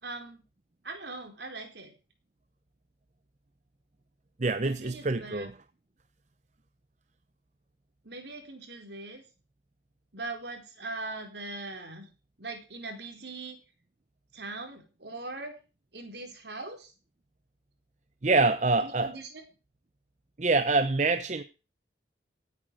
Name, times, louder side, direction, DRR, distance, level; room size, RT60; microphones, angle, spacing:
voice 1, 0.0-0.4 0.8-1.9 4.6-5.5 8.0-9.2 10.1-12.1 12.4-13.6 14.3-15.6 15.9-16.9 18.8-19.4, right 2 dB, 65° right, 4.5 m, -40 dB
voice 2, 4.4-5.5 18.2-19.1 20.4-21.4, right 3 dB, 40° right, 0.7 m, -25 dB
16.5 x 9.3 x 6.4 m
head